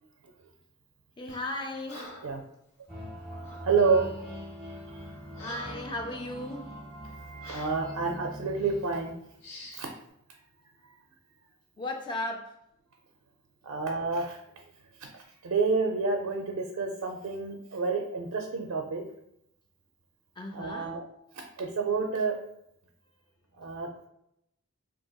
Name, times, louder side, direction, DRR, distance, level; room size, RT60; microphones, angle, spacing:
voice 1, 1.2-2.1 5.4-6.7 11.8-12.6 20.4-21.0, left 2 dB, 20° left, 3 dB, 0.3 m, -36 dB
Breathing, 1.3-1.6 1.9-2.4 3.4-3.7 4.4-4.5 4.9-6.0 6.5-6.6 7.4-7.8 8.5-8.8 9.4-9.9, left 1 dB, 65° left, 0.9 m, -46 dB
sound 1, 2.9-9.5, right 1 dB, ahead, 0.9 m, -43 dB
voice 2, 3.6-4.1 7.5-9.1 9.7-9.9 13.6-14.4 15.0-19.0 20.5-21.0 21.6-22.4 23.6-24.0, right 4 dB, 85° right, 2 dB, 0.4 m, -29 dB
3.9 x 2.8 x 2.3 m, 0.78 s
head